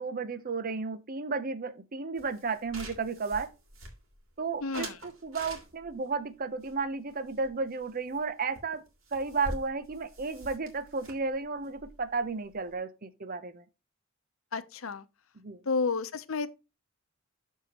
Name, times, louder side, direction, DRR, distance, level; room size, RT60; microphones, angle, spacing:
voice 1, 0.0-3.5 4.4-8.8 9.1-13.6 15.4-15.6, right 4 dB, 45° right, 0.7 m, -33 dB
sound 1, 2.2-4.3 4.7-6.0 6.6-7.9 8.1-8.3 8.6-8.7 8.9-12.7, right 1 dB, 75° right, 2.8 m, -45 dB
voice 2, 4.6-4.9 14.5-15.0 15.7-16.5, left 4 dB, 75° left, 0.8 m, -31 dB
12.5 x 4.6 x 3.0 m
head